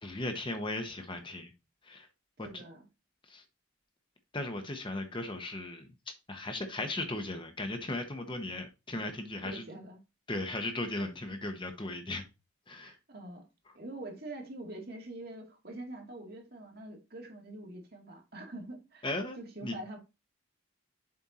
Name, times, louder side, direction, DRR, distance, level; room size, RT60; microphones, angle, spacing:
voice 1, 0.0-1.5 1.8-2.1 2.4-2.6 3.3-3.4 4.3-9.7 10.3-12.2 12.7-12.9 19.0-19.4 19.6-20.0, left 2 dB, 25° left, 1.0 m, -37 dB
voice 2, 2.4-2.9 9.4-10.0 11.0-11.1 12.8-13.4 13.7-19.1 19.4-20.0, right 2 dB, 50° right, 2.1 m, -45 dB
7.6 x 4.5 x 4.2 m
head